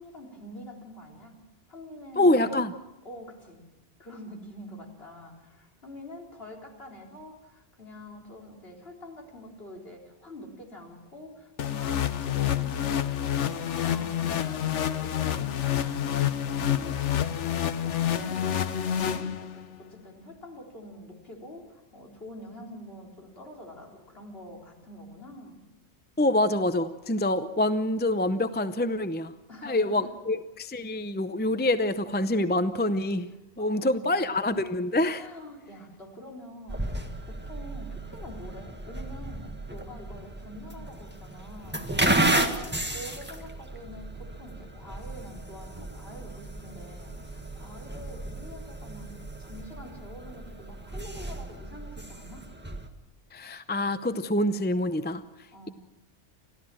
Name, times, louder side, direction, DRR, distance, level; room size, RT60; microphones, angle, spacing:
voice 1, 0.0-1.4 1.7-2.6 3.0-3.7 4.0-25.6 29.5-30.2 33.6-34.3 35.2-49.1 49.4-52.5 55.5-55.7, left 1 dB, 60° left, 0 dB, 4.2 m, -46 dB
voice 2, 2.2-2.7 26.2-29.3 29.6-33.3 33.6-35.2 53.3-55.2, left 1 dB, 10° left, 11 dB, 0.6 m, -26 dB
sound 1, 11.6-19.8, left 10 dB, 85° left, 1.2 m, -28 dB
sound 2, 36.7-52.9, right 1 dB, 10° right, 1.7 m, -33 dB
30.0 x 13.5 x 7.6 m, 0.98 s
omnidirectional pair, 1.2 m